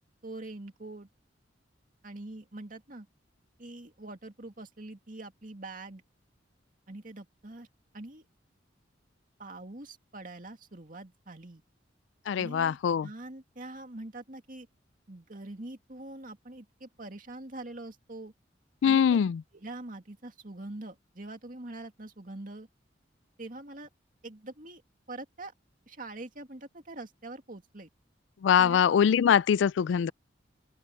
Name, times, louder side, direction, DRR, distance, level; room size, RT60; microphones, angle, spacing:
voice 1, 0.2-1.1 2.0-3.1 3.6-6.0 6.9-7.7 7.9-8.2 9.4-11.6 12.4-14.7 15.1-18.3 18.8-19.0 19.5-22.7 23.4-23.9 24.2-24.8 25.1-25.5 25.9-27.9 28.6-28.8, right 2 dB, 45° right, 2.3 m, -44 dB
voice 2, 12.3-13.1 18.8-19.4 28.4-30.1, left 8 dB, 80° left, 0.3 m, -23 dB
open air
head